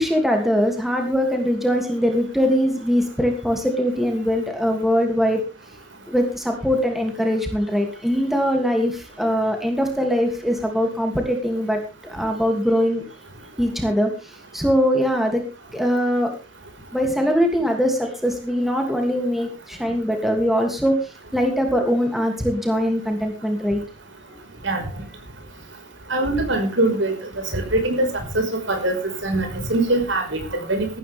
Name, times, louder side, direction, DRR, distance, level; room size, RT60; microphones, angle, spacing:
voice 1, 0.0-5.4 6.1-13.0 13.6-15.4 15.7-16.3 16.9-20.9 21.3-23.8, equal, ahead, 3 dB, 2.9 m, -22 dB
voice 2, 26.1-27.2 27.5-28.1 28.3-30.9, right 2 dB, 70° right, 4 dB, 5.5 m, -22 dB
15.0 x 13.5 x 3.7 m, 0.32 s
head